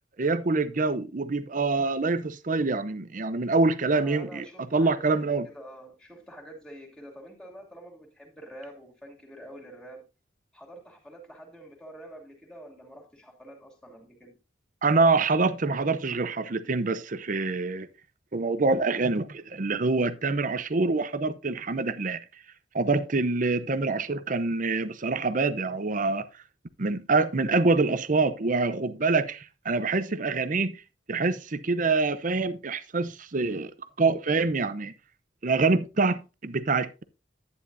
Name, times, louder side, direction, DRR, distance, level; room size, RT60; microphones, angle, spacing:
voice 1, 0.2-4.4 4.7-5.5 14.8-17.9 18.3-22.2 22.7-26.3 26.8-30.8 31.1-33.7 34.0-34.9 35.4-37.0, right 3 dB, 45° right, 0.7 m, -25 dB
voice 2, 3.9-10.1 10.5-14.4, right 1 dB, 5° left, 2.8 m, -47 dB
11.0 x 9.6 x 2.6 m
head